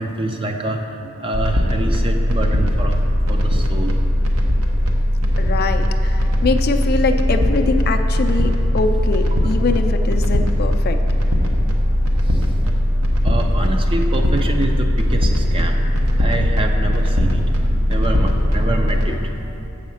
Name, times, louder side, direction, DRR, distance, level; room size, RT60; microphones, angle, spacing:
voice 1, 0.0-3.0 3.3-4.0 9.6-9.7 12.2-12.5 12.9-19.7, right 2 dB, 25° right, 3 dB, 0.5 m, -27 dB
sound 1, 1.3-19.1, equal, 75° right, 0.9 m, -18 dB
voice 2, 5.4-11.0, left 4 dB, 45° left, 6 dB, 0.5 m, -23 dB
7.2 x 4.9 x 7.0 m, 2.8 s
head